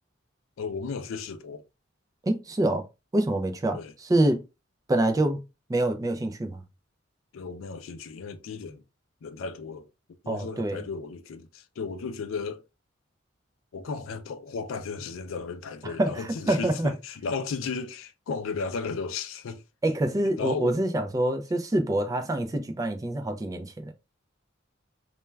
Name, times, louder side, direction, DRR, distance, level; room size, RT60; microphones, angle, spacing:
voice 1, 0.6-1.6 3.7-3.9 7.3-8.8 9.2-9.9 10.2-12.6 13.7-19.6 20.2-20.8, left 4 dB, 85° left, 0.4 m, -34 dB
voice 2, 2.2-2.8 3.1-4.4 4.9-5.4 5.7-6.6 10.3-10.8 15.8-16.9 19.8-23.9, right 1 dB, 20° right, 0.3 m, -26 dB
2.2 x 2.2 x 3.1 m
head